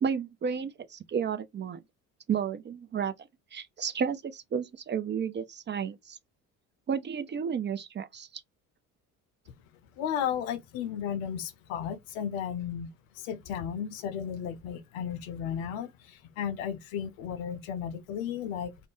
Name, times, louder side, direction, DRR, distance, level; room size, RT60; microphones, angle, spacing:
voice 1, 0.0-1.8 2.3-3.1 3.5-6.2 6.9-8.4, right 7 dB, 30° right, 0.5 m, -32 dB
voice 2, 10.0-12.9 13.1-18.8, left 8 dB, 75° left, 0.6 m, -34 dB
2.4 x 2.0 x 3.6 m
hypercardioid pair, 55°, 38 cm